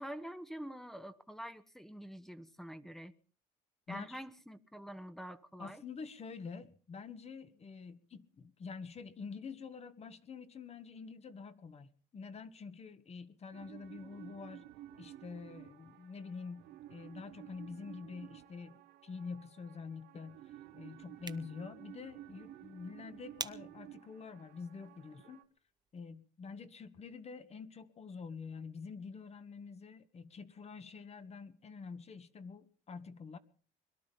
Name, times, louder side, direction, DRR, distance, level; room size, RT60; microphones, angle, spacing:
voice 1, 0.0-3.1 3.9-5.8, equal, ahead, 14 dB, 1.1 m, -46 dB
voice 2, 3.9-4.2 5.6-14.7 15.0-20.4 20.7-25.4 25.9-33.4, left 5 dB, 40° left, 12 dB, 1.6 m, -47 dB
sound 1, 13.5-25.4, right 13 dB, 80° right, 1.4 m, -54 dB
sound 2, 21.0-26.1, right 5 dB, 25° right, 1.0 m, -50 dB
22.0 x 12.0 x 5.4 m, 0.43 s
cardioid pair, 110°, 17 cm